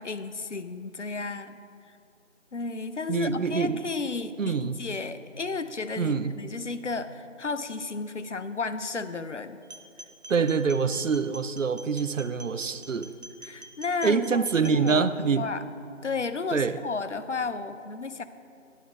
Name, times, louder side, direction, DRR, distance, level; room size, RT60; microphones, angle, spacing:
voice 1, 0.0-1.6 2.5-9.6 10.4-10.5 13.2-15.6 16.0-18.2, left 4 dB, 65° left, 11 dB, 0.6 m, -33 dB
voice 2, 3.1-3.8 4.4-4.8 6.0-6.3 10.3-13.1 14.0-15.5 16.5-16.8, right 5 dB, 80° right, 13 dB, 0.6 m, -25 dB
sound 1, 9.6-15.0, right 1 dB, 60° right, 0.9 m, -46 dB
9.9 x 7.9 x 4.5 m, 2.4 s
figure-of-eight pair, 170°, 38 cm